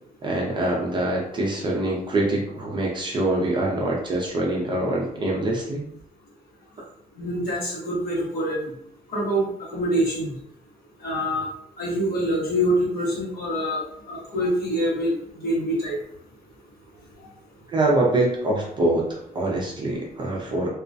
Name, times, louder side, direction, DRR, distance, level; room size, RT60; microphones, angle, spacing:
voice 1, 0.2-5.8 17.7-20.7, right 2 dB, 30° right, -2 dB, 0.4 m, -24 dB
voice 2, 7.2-8.7 9.1-9.5 9.7-10.3 11.0-11.4 11.8-13.8 14.1-15.1 15.4-16.0, equal, 70° left, -4 dB, 1.0 m, -25 dB
2.3 x 2.1 x 2.5 m, 0.72 s
cardioid pair, 170°, 16 cm